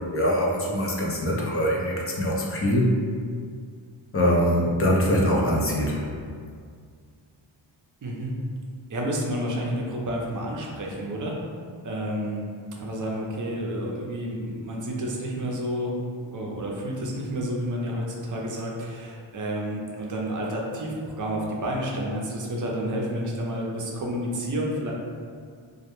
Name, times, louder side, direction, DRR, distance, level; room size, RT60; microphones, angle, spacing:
voice 1, 0.0-2.9 4.1-6.1, equal, 30° left, -3 dB, 0.5 m, -23 dB
voice 2, 8.0-8.4 8.9-11.3 11.8-12.4 12.8-15.9 16.2-24.9, equal, 40° right, -2 dB, 0.6 m, -30 dB
2.3 x 2.1 x 2.9 m, 2.1 s
cardioid pair, 75°, 49 cm